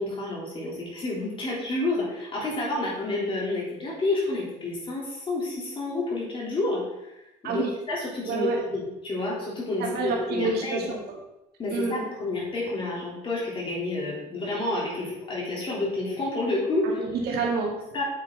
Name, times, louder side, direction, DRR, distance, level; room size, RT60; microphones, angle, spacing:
voice 1, 0.0-6.8 7.4-10.9 11.6-17.0 17.9-18.0, left 2 dB, 30° left, -4 dB, 3.4 m, -29 dB
voice 2, 8.2-8.6 9.8-11.2 11.7-12.1 16.8-17.7, right 4 dB, 65° right, -1 dB, 2.0 m, -28 dB
8.8 x 8.3 x 3.9 m, 0.93 s
cardioid pair, 160°, 18 cm